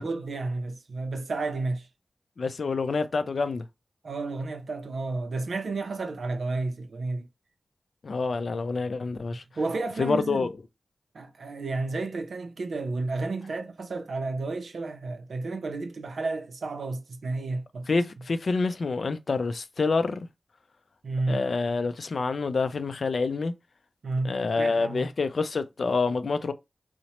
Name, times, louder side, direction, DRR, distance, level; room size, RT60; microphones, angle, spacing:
voice 1, 0.0-1.9 4.0-7.3 9.6-10.5 11.1-17.9 21.0-21.4 24.0-25.1, right 3 dB, 85° right, 0.5 m, -31 dB
voice 2, 2.4-3.6 8.0-9.4 10.0-10.5 17.9-20.3 21.3-23.5 24.2-26.5, left 4 dB, 75° left, 0.3 m, -27 dB
2.8 x 2.1 x 2.8 m
cardioid pair, 40°, 0 cm